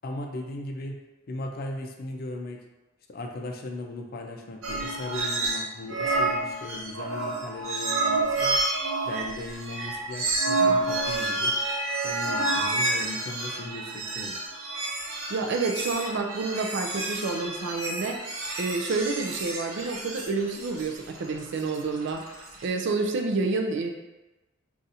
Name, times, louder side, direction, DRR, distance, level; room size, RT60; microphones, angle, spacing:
voice 1, 0.0-1.0 1.3-2.6 3.1-8.6 9.0-11.5 12.0-14.4, left 2 dB, 45° left, 3 dB, 0.4 m, -37 dB
sound 1, 4.6-5.6 5.9-22.6, right 2 dB, 85° right, 0.7 m, -29 dB
voice 2, 15.3-18.2 18.6-22.2 22.6-23.9, right 3 dB, 60° right, 4 dB, 0.4 m, -28 dB
2.6 x 2.4 x 4.1 m, 1.1 s
head